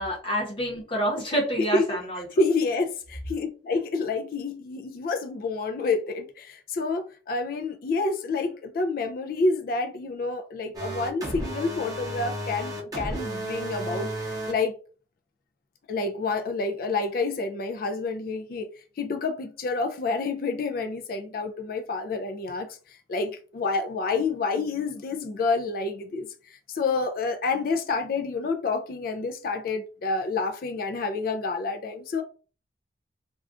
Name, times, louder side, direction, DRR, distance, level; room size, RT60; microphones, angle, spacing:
voice 1, 0.0-2.2, equal, 30° left, 0.9 m, -28 dB
voice 2, 2.3-14.8 15.9-18.7 19.0-32.2, left 3 dB, 50° left, 0.3 m, -28 dB
sound 1, 10.7-14.5, right 1 dB, 20° right, 0.8 m, -33 dB
2.5 x 2.3 x 3.5 m
head